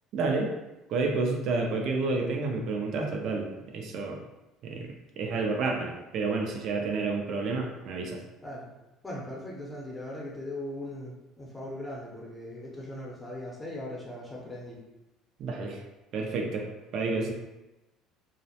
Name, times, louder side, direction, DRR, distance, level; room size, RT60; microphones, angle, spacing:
voice 1, 0.1-0.5 0.9-4.2 4.6-8.2 15.4-15.8 16.1-17.3, right 3 dB, 60° right, 2 dB, 0.4 m, -30 dB
voice 2, 9.0-14.8, left 1 dB, 15° left, -4 dB, 0.7 m, -39 dB
2.3 x 2.1 x 2.7 m, 1.0 s
supercardioid pair, 100°, 0 cm